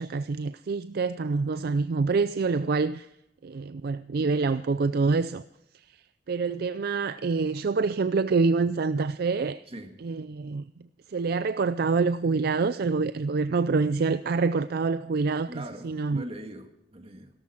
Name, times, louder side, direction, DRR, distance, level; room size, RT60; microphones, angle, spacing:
voice 1, 0.0-3.1 3.4-5.4 6.3-9.6 10.0-10.7 11.1-16.2, right 4 dB, 60° right, 0.4 m, -26 dB
voice 2, 15.5-17.3, right 1 dB, 35° right, 1.8 m, -41 dB
16.5 x 13.5 x 4.5 m
head